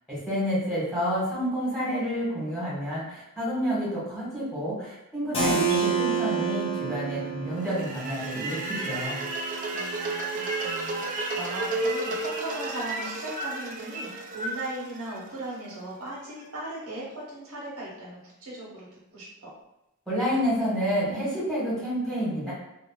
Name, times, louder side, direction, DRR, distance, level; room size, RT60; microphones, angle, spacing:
voice 1, 0.1-8.6 8.8-9.2 20.1-22.5, equal, 5° left, -9 dB, 1.3 m, -29 dB
Keyboard (musical), 5.3-10.9, right 6 dB, 25° left, 0.5 m, -30 dB
voice 2, 5.3-5.8 9.7-19.5, right 1 dB, 85° right, -4 dB, 1.0 m, -38 dB
sound 1, 7.6-15.7, right 2 dB, 35° right, 0.3 m, -32 dB
3.0 x 2.4 x 2.3 m, 0.88 s
head